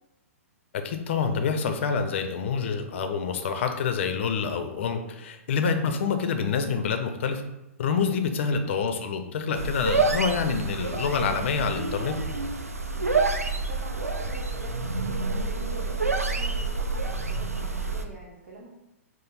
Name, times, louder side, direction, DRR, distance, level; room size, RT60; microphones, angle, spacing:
voice 1, 0.7-7.4 7.8-12.2, left 5 dB, 55° left, 7 dB, 0.6 m, -27 dB
sound 1, 9.5-18.0, right 3 dB, 90° right, 0.4 m, -28 dB
voice 2, 12.9-18.7, right 2 dB, 55° right, -5 dB, 1.0 m, -46 dB
5.0 x 2.1 x 4.1 m, 0.91 s
figure-of-eight pair, 110°, 8 cm